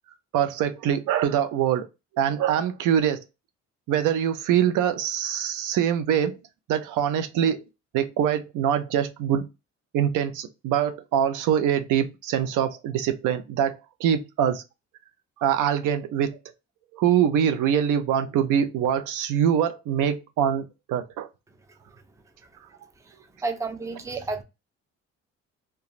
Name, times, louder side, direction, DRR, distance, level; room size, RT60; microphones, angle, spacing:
voice 1, 0.3-1.9 2.2-3.2 3.9-6.4 6.7-7.6 7.9-9.5 9.9-14.6 15.4-16.4 16.9-21.3, right 9 dB, 85° right, 0.5 m, -24 dB
voice 2, 23.4-24.4, right 3 dB, 10° right, 0.4 m, -30 dB
2.4 x 2.3 x 2.9 m
cardioid pair, 90°, 30 cm